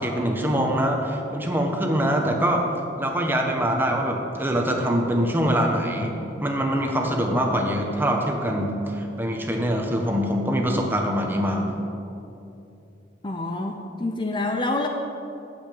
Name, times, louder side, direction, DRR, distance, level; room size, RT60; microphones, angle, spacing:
voice 1, 0.0-2.6 3.0-11.7, equal, 10° right, 1 dB, 1.3 m, -24 dB
voice 2, 13.2-14.9, left 2 dB, 25° left, 3 dB, 0.6 m, -27 dB
9.7 x 8.1 x 8.8 m, 2.8 s
head